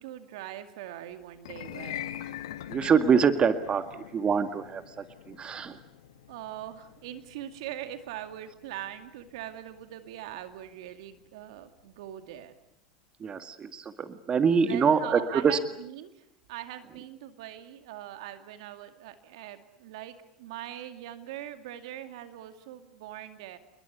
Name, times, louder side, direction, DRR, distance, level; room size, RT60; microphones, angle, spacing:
voice 1, 0.0-2.1 6.3-12.5 14.6-23.6, right 12 dB, 70° right, 9 dB, 2.3 m, -42 dB
sound 1, 1.3-11.7, left 11 dB, 75° left, 1.7 m, -44 dB
voice 2, 2.7-3.9 4.1-5.8 13.2-15.6, right 6 dB, 30° right, 10 dB, 2.0 m, -25 dB
29.0 x 21.5 x 8.2 m, 0.76 s
hypercardioid pair, 80°, 3 cm